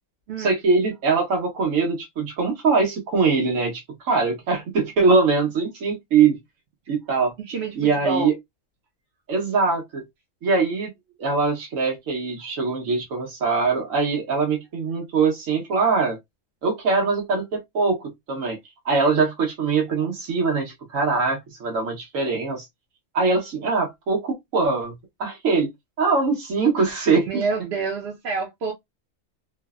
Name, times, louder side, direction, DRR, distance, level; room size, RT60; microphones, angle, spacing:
voice 1, 0.4-6.4 6.9-7.3 7.7-8.3 9.3-10.0 10.4-10.9 11.2-16.2 16.6-18.6 18.8-22.7 23.1-25.7 26.0-27.4, right 4 dB, 85° right, 1.3 m, -22 dB
voice 2, 7.4-8.3 27.3-28.7, right 4 dB, 65° right, 0.8 m, -27 dB
3.0 x 2.1 x 2.3 m
omnidirectional pair, 1.3 m